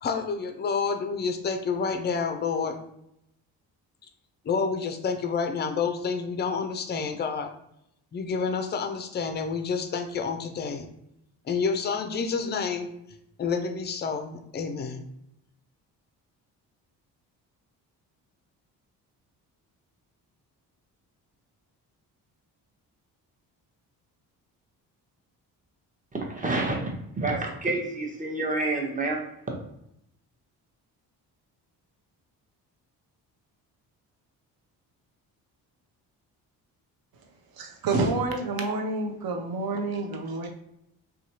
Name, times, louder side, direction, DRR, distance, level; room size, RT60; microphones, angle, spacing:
voice 1, 0.0-2.8 4.4-7.5 8.1-10.9 11.5-12.9 13.4-15.1, left 5 dB, 25° left, 0.4 m, -29 dB
voice 2, 26.1-29.2, right 2 dB, 20° right, 0.8 m, -28 dB
voice 3, 37.6-40.5, right 3 dB, 55° right, 0.7 m, -28 dB
2.7 x 2.3 x 2.7 m
supercardioid pair, 55°, 44 cm